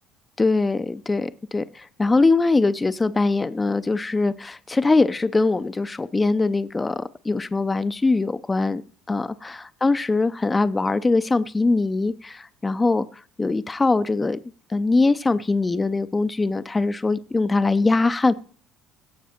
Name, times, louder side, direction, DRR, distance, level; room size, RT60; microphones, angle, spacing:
voice 1, 0.4-8.8 9.1-13.1 13.4-14.4 14.7-18.3, left 3 dB, 15° left, 0.6 m, -22 dB
17.0 x 6.0 x 4.4 m
cardioid pair, 110°, 0 cm